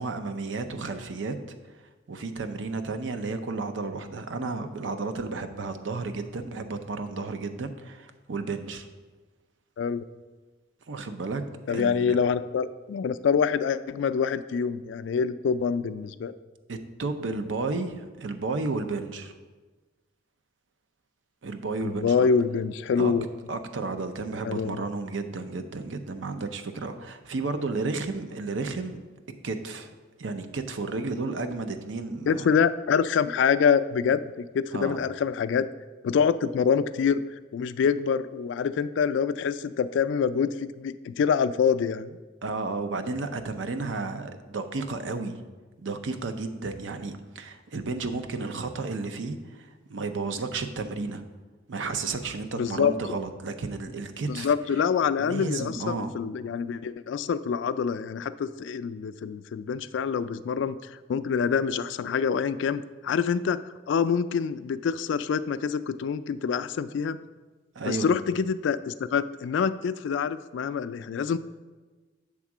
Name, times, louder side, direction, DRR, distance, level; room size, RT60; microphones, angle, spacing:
voice 1, 0.0-1.3 2.1-8.9 10.9-11.4 11.7-12.2 16.7-19.3 21.4-22.3 23.0-23.1 23.5-29.0 29.4-29.9 30.2-32.5 34.7-35.0 42.4-45.4 45.8-51.2 51.7-54.5 55.2-56.1 67.8-68.1, right 3 dB, 80° right, 8 dB, 0.6 m, -32 dB
voice 2, 11.7-16.3 21.8-23.3 24.4-24.8 32.3-35.7 36.0-37.2 37.5-42.2 52.6-52.9 54.3-63.6 63.9-67.2 67.9-71.4, left 6 dB, 75° left, 13 dB, 0.3 m, -26 dB
7.4 x 3.6 x 6.0 m, 1.3 s
head